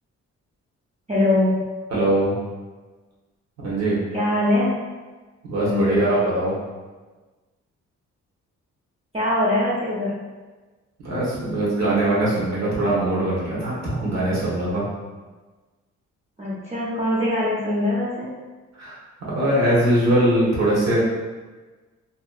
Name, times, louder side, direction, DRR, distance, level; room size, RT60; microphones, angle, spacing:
voice 1, 1.1-1.6 4.1-4.8 5.6-6.1 9.1-10.1 16.4-18.4, left 1 dB, 20° right, -8 dB, 0.6 m, -22 dB
voice 2, 1.9-2.3 3.6-4.0 5.5-6.6 11.0-14.8 18.8-19.0 19.3-21.0, right 1 dB, 60° right, -7 dB, 1.1 m, -21 dB
2.8 x 2.2 x 2.3 m, 1.3 s
cardioid pair, 105°, 30 cm